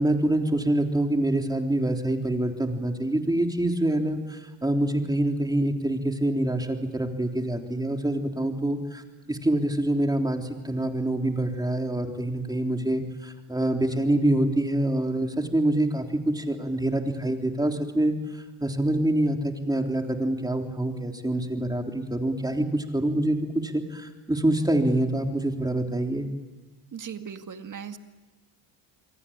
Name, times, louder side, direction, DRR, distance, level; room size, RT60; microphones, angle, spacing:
voice 1, 0.0-9.0 9.3-26.3, right 1 dB, 10° right, 3 dB, 3.6 m, -26 dB
voice 2, 26.9-28.0, right 7 dB, 40° right, 7 dB, 2.1 m, -38 dB
27.5 x 23.5 x 8.9 m, 1.2 s
cardioid pair, 100°, 47 cm